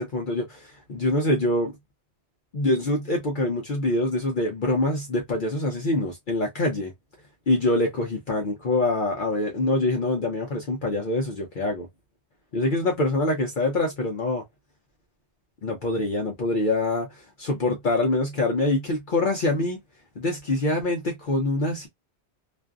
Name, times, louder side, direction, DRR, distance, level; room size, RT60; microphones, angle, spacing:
voice 1, 0.0-1.7 2.5-6.9 7.5-11.9 12.5-14.4 15.6-19.8 20.2-21.9, left 2 dB, 55° left, 0.8 m, -25 dB
2.5 x 2.4 x 2.2 m
omnidirectional pair, 1.1 m